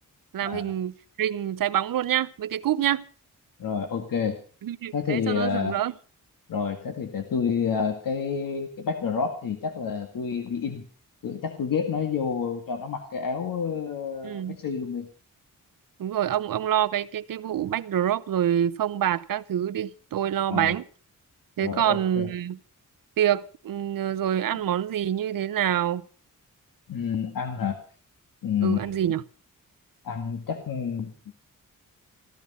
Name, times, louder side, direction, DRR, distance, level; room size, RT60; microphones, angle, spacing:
voice 1, 0.3-3.0 4.6-5.9 14.2-14.6 16.0-20.9 21.6-22.6 23.2-26.0 28.6-29.2, right 10 dB, 80° right, 0.8 m, -26 dB
voice 2, 3.6-4.4 4.9-5.8 6.5-10.8 11.2-15.1 20.5-20.7 21.6-22.3 26.9-27.8 28.4-29.0 30.0-31.1, left 6 dB, 80° left, 2.0 m, -29 dB
15.5 x 14.5 x 5.5 m
wide cardioid pair, 160°, 33 cm